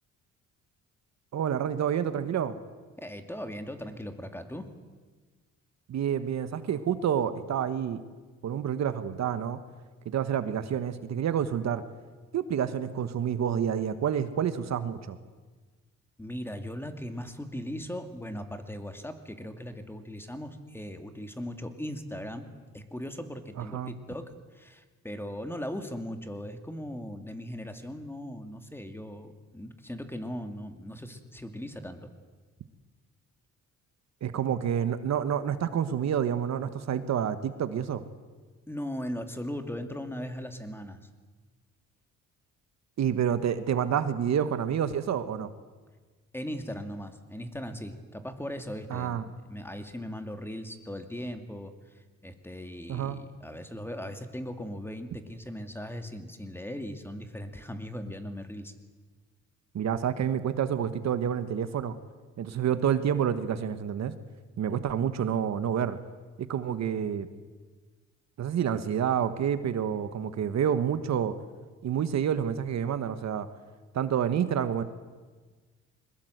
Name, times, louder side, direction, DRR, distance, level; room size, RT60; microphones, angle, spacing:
voice 1, 1.3-2.5 5.9-8.0 8.4-9.6 10.0-11.8 12.3-15.2 23.6-23.9 34.2-38.0 43.0-45.5 48.9-49.2 52.9-53.2 59.7-62.0 62.4-64.1 64.6-66.0 66.4-67.3 68.4-71.3 71.8-73.5 73.9-74.8, right 8 dB, 60° right, 11 dB, 1.4 m, -28 dB
voice 2, 3.0-4.7 16.2-22.5 22.7-24.2 24.5-32.1 38.7-41.0 46.3-58.7, equal, 5° left, 7 dB, 2.5 m, -38 dB
22.0 x 20.5 x 8.1 m, 1.4 s
cardioid pair, 90°, 30 cm